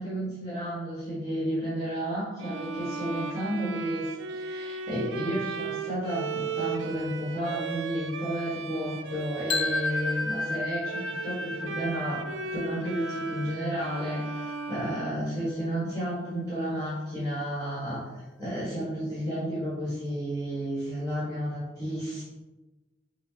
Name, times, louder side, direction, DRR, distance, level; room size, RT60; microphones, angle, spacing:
voice 1, 0.0-18.1 18.4-22.2, equal, 20° left, -10 dB, 1.4 m, -32 dB
Bowed string instrument, 2.4-15.9, right 5 dB, 80° right, 0.4 m, -37 dB
sound 1, 9.5-15.4, left 3 dB, 60° left, 0.5 m, -34 dB
5.7 x 2.4 x 3.9 m, 1.1 s
head